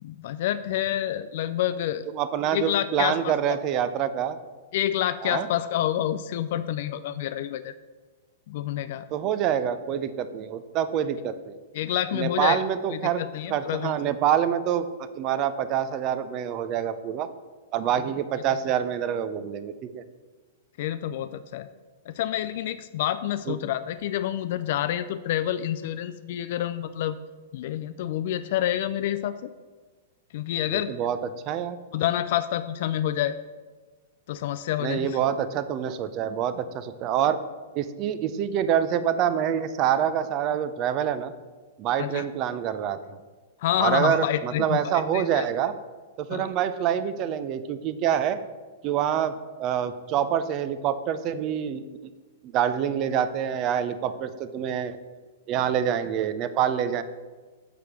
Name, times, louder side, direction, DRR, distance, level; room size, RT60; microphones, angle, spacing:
voice 1, 0.0-2.0 2.5-3.6 4.7-7.7 8.5-9.1 11.7-12.6 12.9-14.0 20.8-21.7 22.1-27.2 27.5-29.5 30.3-30.9 31.9-33.3 34.3-35.2 42.0-42.2 43.6-44.8 45.1-45.4 46.3-46.5, left 12 dB, 55° left, 12 dB, 0.3 m, -28 dB
voice 2, 2.1-4.4 5.2-5.5 9.1-11.6 12.1-13.2 13.5-17.3 17.7-20.0 23.5-23.6 30.7-31.2 31.4-31.8 34.8-37.4 37.7-41.3 41.8-43.0 43.8-45.7 46.2-48.4 48.8-49.3 49.6-52.1 52.4-55.0 55.5-57.0, right 9 dB, 35° right, 12 dB, 0.5 m, -26 dB
6.9 x 4.8 x 6.0 m, 1.3 s
hypercardioid pair, 150°, 0 cm